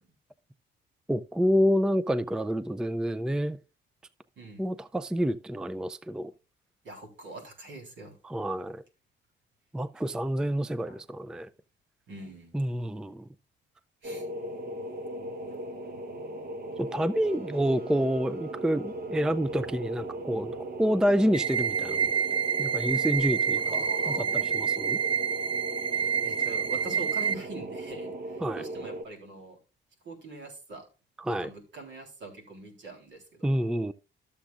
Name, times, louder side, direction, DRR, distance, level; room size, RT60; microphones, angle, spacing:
voice 1, 1.1-3.6 4.6-6.3 8.2-8.8 9.7-11.5 12.5-13.2 16.8-22.1 22.6-23.8 24.5-25.0 28.4-28.7 31.2-31.5 33.4-33.9, equal, 5° right, 0.4 m, -28 dB
voice 2, 4.4-4.7 6.8-8.2 10.9-11.0 12.1-12.5 14.0-14.3 17.9-18.1 22.7-22.8 23.6-24.5 25.9-29.6 30.0-30.9 31.3-33.6, right 2 dB, 70° right, 3.6 m, -43 dB
sound 1, 14.0-29.0, right 1 dB, 50° right, 1.2 m, -38 dB
sound 2, 21.3-27.3, right 7 dB, 25° right, 0.7 m, -28 dB
13.0 x 7.2 x 2.4 m
cardioid pair, 90°, 20 cm